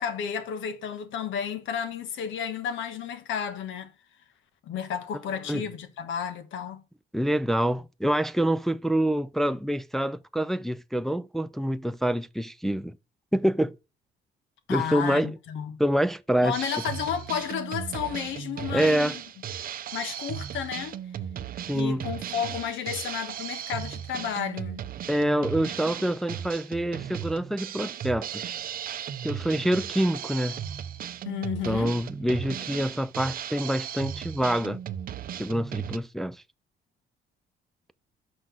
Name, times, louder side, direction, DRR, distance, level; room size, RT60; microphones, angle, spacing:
voice 1, 0.0-3.9 4.6-6.8 14.7-15.8 16.4-19.2 19.9-21.0 21.7-24.8 31.2-31.9, left 8 dB, 85° left, 1.3 m, -32 dB
voice 2, 7.1-12.9 13.3-13.7 14.7-15.3 15.8-16.6 18.7-19.2 21.7-22.1 25.1-28.6 29.2-30.6 31.7-34.8 35.4-36.4, right 1 dB, ahead, 0.3 m, -26 dB
Drum kit, 16.5-36.0, right 9 dB, 50° right, 0.6 m, -36 dB
5.8 x 5.2 x 6.1 m
cardioid pair, 135°, 19 cm